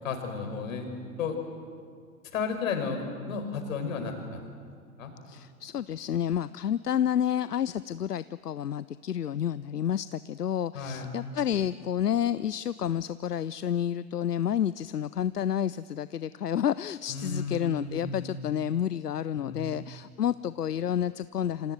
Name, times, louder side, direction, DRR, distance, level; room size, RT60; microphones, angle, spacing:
voice 1, 0.0-0.9 1.2-1.4 2.3-3.0 3.3-4.4 5.0-5.1 10.7-11.1 17.1-18.3 19.4-19.7, left 5 dB, 60° left, 5 dB, 5.6 m, -33 dB
voice 2, 5.3-21.7, left 9 dB, 85° left, 17 dB, 0.7 m, -30 dB
28.0 x 26.5 x 8.0 m, 2.1 s
figure-of-eight pair, 110°, 46 cm